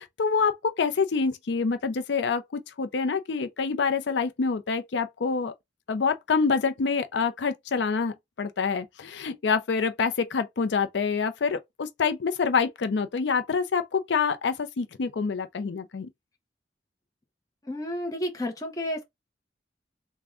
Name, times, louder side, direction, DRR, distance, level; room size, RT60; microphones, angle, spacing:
voice 1, 0.0-5.5 5.9-16.1, left 5 dB, 80° left, 0.5 m, -26 dB
voice 2, 17.6-19.0, left 1 dB, 20° left, 0.7 m, -31 dB
3.4 x 2.2 x 3.6 m
head